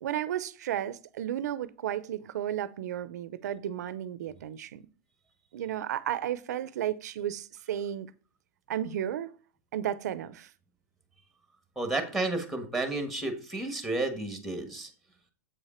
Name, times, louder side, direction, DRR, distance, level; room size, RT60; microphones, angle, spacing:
voice 1, 0.0-4.8 5.5-8.1 8.7-9.3 9.7-10.5, right 11 dB, 85° right, 0.6 m, -33 dB
voice 2, 11.8-14.9, right 2 dB, ahead, 1.3 m, -31 dB
7.9 x 5.0 x 4.3 m
supercardioid pair, 150°, 9 cm